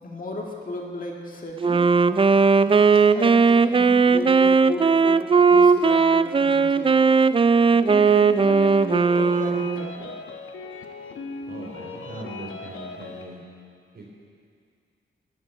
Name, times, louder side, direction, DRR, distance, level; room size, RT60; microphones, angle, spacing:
voice 1, 0.0-1.9 2.6-6.9 7.7-10.2, left 1 dB, 45° left, -1 dB, 2.2 m, -34 dB
Wind instrument woodwind instrument, 1.6-9.9, right 5 dB, 25° right, 0.4 m, -18 dB
voice 2, 2.0-3.1 11.5-13.4 13.9-14.1, right 2 dB, 50° right, -2 dB, 3.8 m, -41 dB
sound 1, 7.8-13.3, left 3 dB, 85° left, 1.2 m, -38 dB
15.5 x 9.7 x 8.1 m, 2.2 s
wide cardioid pair, 110°, 20 cm